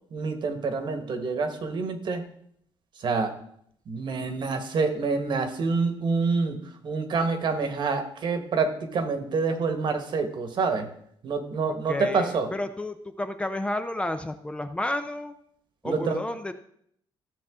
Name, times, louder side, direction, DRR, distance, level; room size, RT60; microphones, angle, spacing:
voice 1, 0.1-2.2 3.0-3.3 3.9-10.9 11.2-12.5 15.8-16.2, right 4 dB, 50° right, 7 dB, 1.4 m, -27 dB
voice 2, 11.7-15.3 15.8-16.5, left 1 dB, 10° left, 8 dB, 0.5 m, -31 dB
14.5 x 7.1 x 3.7 m, 0.68 s
cardioid pair, 140°, 10 cm